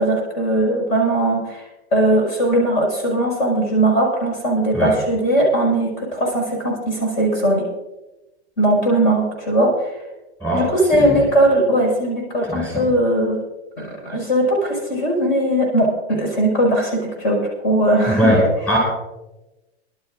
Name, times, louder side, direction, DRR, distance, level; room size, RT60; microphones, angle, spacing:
voice 1, 0.0-1.6 1.9-7.7 8.6-9.9 10.5-13.4 13.8-18.3, right 1 dB, 45° left, 0 dB, 5.5 m, -19 dB
voice 2, 12.5-12.9 18.1-18.4 18.7-18.8, equal, 5° left, -3 dB, 5.7 m, -20 dB
25.0 x 12.0 x 2.5 m, 1.0 s
supercardioid pair, 165°, 33 cm